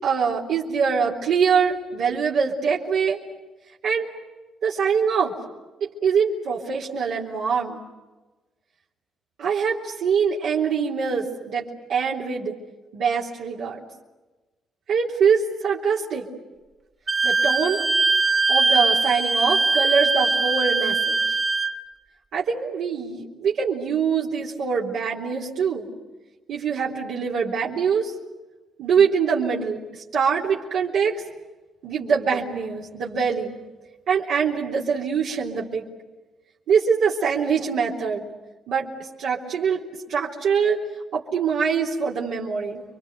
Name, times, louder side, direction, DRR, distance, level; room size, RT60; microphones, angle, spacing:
voice 1, 0.0-3.2 3.8-4.1 4.6-5.3 5.8-7.8 9.4-12.5 12.9-13.8 14.9-16.3 17.2-17.8 18.5-21.2 22.3-25.9 26.5-28.1 28.8-29.8 30.1-31.2 31.8-33.6 34.1-35.9 36.7-38.3 38.7-38.9 39.2-39.8 40.1-40.8 41.1-42.8, right 6 dB, 80° right, -4 dB, 3.7 m, -23 dB
Wind instrument woodwind instrument, 17.1-21.7, right 3 dB, 25° right, 1.9 m, -21 dB
29.5 x 24.0 x 8.2 m, 1.2 s
cardioid pair, 90°, 0 cm